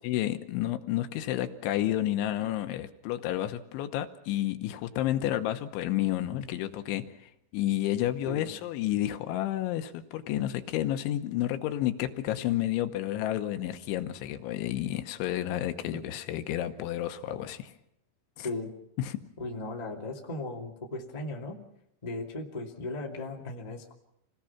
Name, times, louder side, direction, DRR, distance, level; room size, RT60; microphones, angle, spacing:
voice 1, 0.0-17.7 18.4-18.5 19.0-19.2, left 13 dB, 80° left, 9 dB, 3.3 m, -31 dB
voice 2, 18.4-18.7 19.4-21.6 22.0-23.9, left 2 dB, 20° left, -1 dB, 1.0 m, -37 dB
28.0 x 18.5 x 5.9 m, 0.79 s
omnidirectional pair, 5.6 m